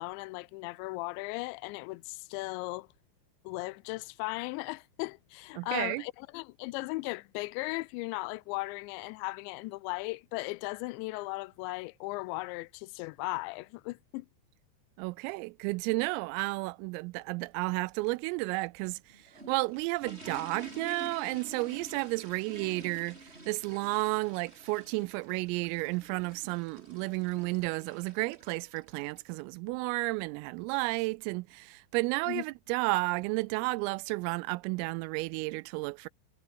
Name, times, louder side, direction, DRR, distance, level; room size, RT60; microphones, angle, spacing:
voice 1, 0.0-2.9 3.5-14.3 32.3-32.4, left 24 dB, 90° left, 2.6 m, -37 dB
voice 2, 5.6-6.0 15.0-19.0 19.5-36.1, right 25 dB, 90° right, 3.3 m, -32 dB
sound 1, 18.9-29.3, right 1 dB, 10° right, 6.0 m, -50 dB
omnidirectional pair, 5.9 m